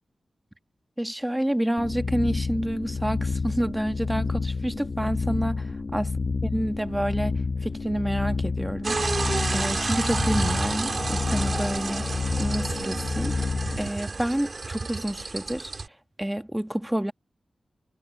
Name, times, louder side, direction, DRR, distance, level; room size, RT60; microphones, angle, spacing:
voice 1, 1.0-5.7 5.9-6.1 6.4-12.0 12.4-13.4 13.8-15.7 16.2-17.1, right 1 dB, 10° right, 1.5 m, -29 dB
sound 1, 1.8-13.9, left 4 dB, 55° left, 1.0 m, -29 dB
sound 2, 8.8-15.9, right 3 dB, 50° right, 2.2 m, -30 dB
wide cardioid pair, 70°, 0 cm